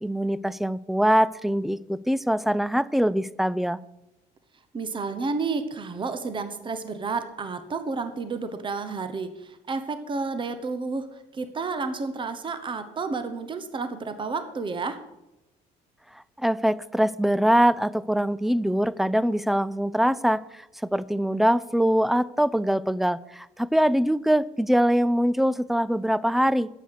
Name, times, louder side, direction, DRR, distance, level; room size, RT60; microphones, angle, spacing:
voice 1, 0.0-3.8 16.4-20.7 20.9-26.7, equal, ahead, 19 dB, 0.3 m, -23 dB
voice 2, 4.7-15.0, right 4 dB, 30° right, 10 dB, 1.0 m, -31 dB
9.2 x 7.9 x 6.6 m, 0.90 s
cardioid pair, 110°, 17 cm